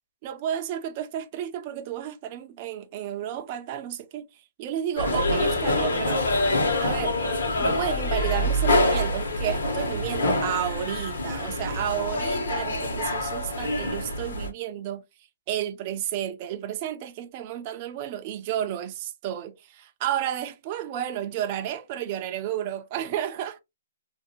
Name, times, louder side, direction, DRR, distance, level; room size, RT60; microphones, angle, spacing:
voice 1, 0.2-6.2 6.8-7.2 7.6-15.0 15.5-23.5, right 10 dB, 25° right, 0.3 m, -32 dB
sound 1, 5.0-14.5, left 1 dB, 65° left, 1.1 m, -26 dB
2.6 x 2.5 x 2.7 m
hypercardioid pair, 175°, 0 cm